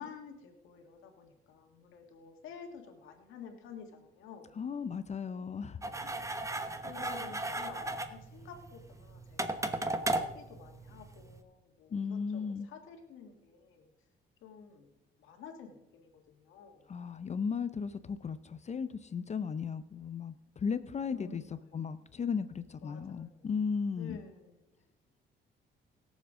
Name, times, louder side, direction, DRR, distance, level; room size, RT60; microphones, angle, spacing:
voice 1, 0.0-4.5 5.3-5.4 6.7-13.9 14.4-14.9 15.2-16.9 21.1-21.9 22.8-23.5 24.0-24.6, left 6 dB, 90° left, 4 dB, 1.7 m, -51 dB
voice 2, 4.6-6.1 11.9-12.7 16.9-21.4 21.7-24.2, left 6 dB, 35° left, 13 dB, 0.5 m, -36 dB
sound 1, 5.8-11.4, right 2 dB, 15° right, 1.1 m, -36 dB
21.0 x 7.3 x 3.7 m, 0.93 s
cardioid pair, 90°, 20 cm